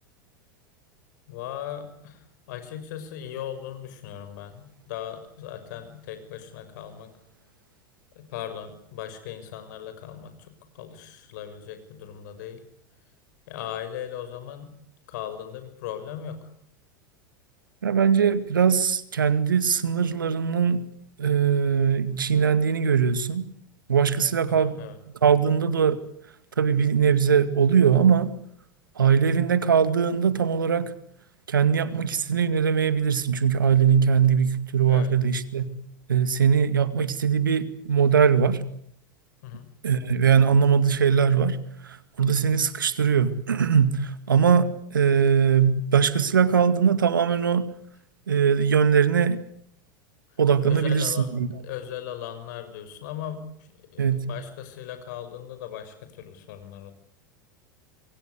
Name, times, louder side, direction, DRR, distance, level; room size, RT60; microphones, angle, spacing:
voice 1, 1.3-7.1 8.1-12.6 13.5-14.7 15.1-16.4 24.5-25.0 31.9-32.0 34.9-35.1 39.4-39.7 50.6-51.3 51.6-56.9, left 10 dB, 60° left, 10 dB, 6.1 m, -38 dB
voice 2, 17.8-20.8 21.2-23.5 23.9-24.8 25.2-26.0 26.6-28.3 29.0-30.9 31.5-35.8 36.1-38.6 39.8-41.6 41.8-47.7 48.3-49.4 50.4-51.5 54.0-54.3, right 7 dB, 80° right, 13 dB, 2.2 m, -21 dB
27.5 x 23.0 x 8.1 m, 0.66 s
figure-of-eight pair, 85°, 11 cm